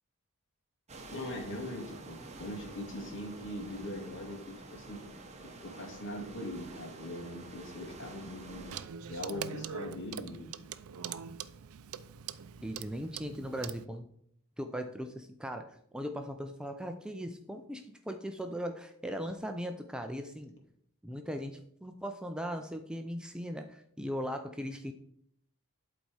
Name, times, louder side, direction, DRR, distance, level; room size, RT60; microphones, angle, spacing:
sound 1, 0.9-8.8, right 2 dB, 30° right, 1.1 m, -48 dB
voice 1, 1.1-5.0 5.4-8.8 9.1-10.5, left 1 dB, 55° left, 0 dB, 2.2 m, -41 dB
Clock, 8.7-13.9, right 7 dB, 65° right, 0.4 m, -43 dB
voice 2, 12.6-14.1 14.6-20.5 21.0-24.9, equal, 5° right, 5 dB, 0.4 m, -39 dB
11.5 x 4.1 x 4.8 m, 0.70 s
head